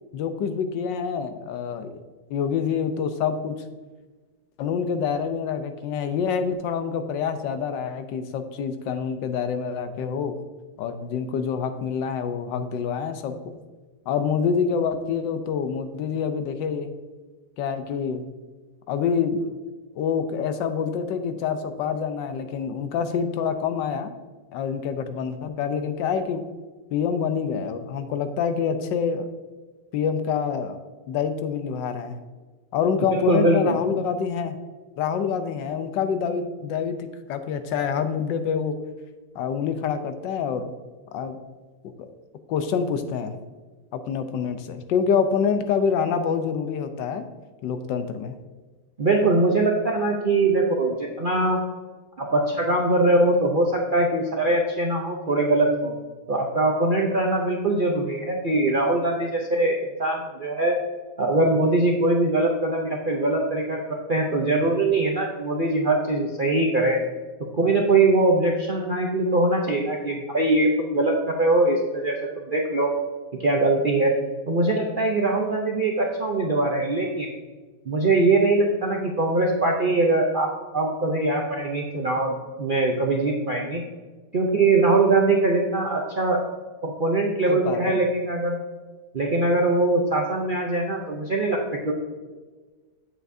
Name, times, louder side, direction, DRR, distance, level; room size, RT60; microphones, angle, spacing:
voice 1, 0.1-1.9 2.3-3.6 4.6-10.3 10.8-13.5 14.1-16.9 17.6-18.2 18.9-19.5 19.9-24.1 24.5-26.4 26.9-29.3 29.9-30.8 31.1-32.2 32.7-34.6 35.0-38.8 39.3-40.7 41.1-41.4 42.5-43.4 43.9-47.3 47.6-48.4 87.5-88.0, left 6 dB, 90° left, 9 dB, 1.4 m, -26 dB
voice 2, 33.1-33.8 49.0-51.6 52.2-55.9 56.3-60.8 61.2-67.0 67.5-72.2 72.4-72.9 73.4-74.2 74.5-77.3 77.9-83.8 84.3-86.4 86.8-88.6 89.1-91.9, right 2 dB, 60° right, -1 dB, 0.5 m, -22 dB
8.3 x 7.5 x 2.7 m, 1.3 s
omnidirectional pair, 1.9 m